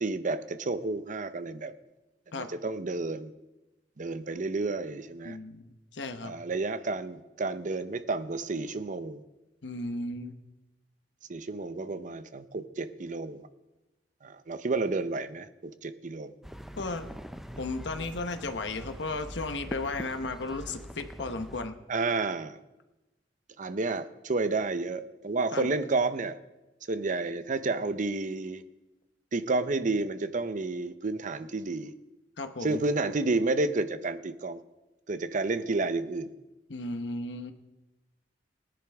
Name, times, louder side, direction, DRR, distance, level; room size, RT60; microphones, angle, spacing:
voice 1, 0.0-1.7 2.4-3.3 4.0-5.4 6.2-9.2 11.3-13.5 14.2-16.3 21.9-22.6 23.6-26.4 26.9-28.6 29.3-31.9 32.6-34.6 35.1-36.3, right 3 dB, 45° right, 12 dB, 0.6 m, -31 dB
voice 2, 5.2-6.3 9.6-10.4 16.8-17.1 17.6-21.8 25.5-25.7 32.4-32.8 36.7-37.5, left 2 dB, 80° left, 8 dB, 1.0 m, -35 dB
sound 1, 16.4-21.7, equal, ahead, 0.4 m, -43 dB
20.0 x 10.0 x 3.5 m, 1.0 s
head